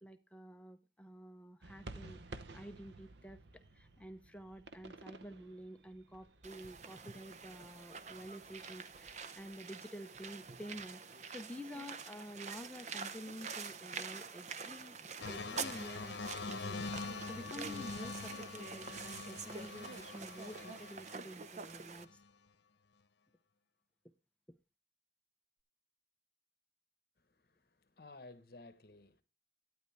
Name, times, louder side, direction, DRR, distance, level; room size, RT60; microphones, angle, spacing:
voice 1, 0.0-15.0 15.2-22.2, equal, 5° left, 0.7 m, -50 dB
sound 1, 1.6-9.6, right 2 dB, 85° right, 0.8 m, -54 dB
sound 2, 6.4-22.0, right 5 dB, 40° right, 0.6 m, -47 dB
sound 3, 15.2-21.2 22.0-22.2, left 4 dB, 85° left, 0.8 m, -44 dB
voice 2, 27.2-29.2, left 2 dB, 55° left, 1.1 m, -56 dB
12.0 x 9.4 x 3.4 m
head